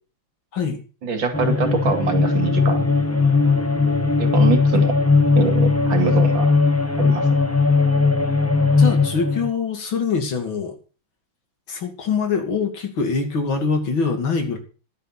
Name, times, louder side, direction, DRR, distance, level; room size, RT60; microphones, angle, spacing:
voice 1, 1.0-2.8 4.2-4.9 5.4-6.5 7.0-7.3, right 5 dB, 75° right, 7 dB, 3.0 m, -24 dB
sound 1, 1.3-9.5, left 4 dB, 10° left, 0.9 m, -18 dB
voice 2, 8.8-10.8 11.7-14.6, left 5 dB, 90° left, 5 dB, 3.3 m, -24 dB
14.5 x 11.0 x 4.1 m, 0.36 s
omnidirectional pair, 2.1 m